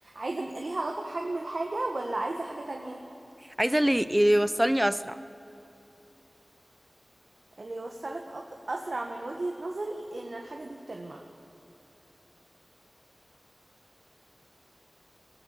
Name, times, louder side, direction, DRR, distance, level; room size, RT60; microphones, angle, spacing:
voice 1, 0.0-3.0 7.6-11.2, right 2 dB, 65° right, 2 dB, 1.6 m, -34 dB
voice 2, 3.6-5.2, right 1 dB, 10° right, 13 dB, 0.7 m, -23 dB
22.0 x 16.0 x 8.6 m, 2.9 s
wide cardioid pair, 45°, 0 cm